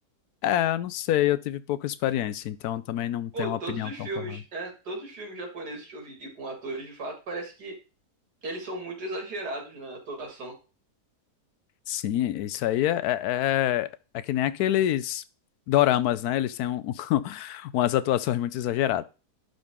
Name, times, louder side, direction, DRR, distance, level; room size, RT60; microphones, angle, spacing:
voice 1, 0.4-4.4 11.9-13.9 14.1-15.2 15.7-19.0, left 12 dB, 75° left, 1.1 m, -26 dB
voice 2, 3.3-7.8 8.4-10.5, right 2 dB, 85° right, 2.7 m, -36 dB
11.5 x 3.9 x 3.6 m
omnidirectional pair, 1.7 m